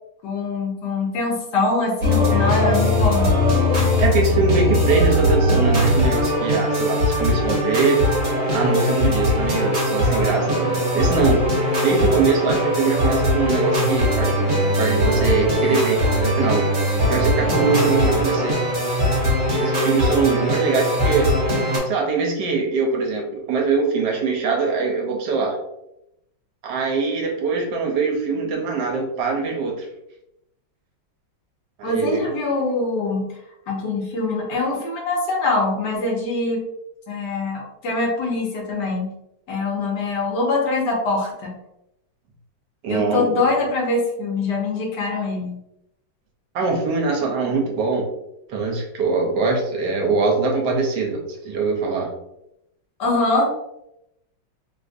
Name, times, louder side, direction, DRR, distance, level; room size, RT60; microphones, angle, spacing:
voice 1, 0.2-3.3 31.8-33.3 33.7-36.6 37.1-39.1 39.5-41.5 42.9-45.6 53.0-53.5, left 3 dB, 70° left, -1 dB, 1.4 m, -23 dB
sound 1, 2.0-21.8, left 1 dB, 45° right, 1.2 m, -20 dB
voice 2, 4.0-8.0 8.5-11.4 11.8-14.3 14.8-16.7 17.1-18.5 19.5-21.3 21.9-25.6 26.6-29.9 31.8-32.3 42.8-43.3 46.5-48.1 48.5-52.1, right 4 dB, 75° right, 1 dB, 1.2 m, -22 dB
3.4 x 2.5 x 2.4 m, 0.83 s
omnidirectional pair, 2.0 m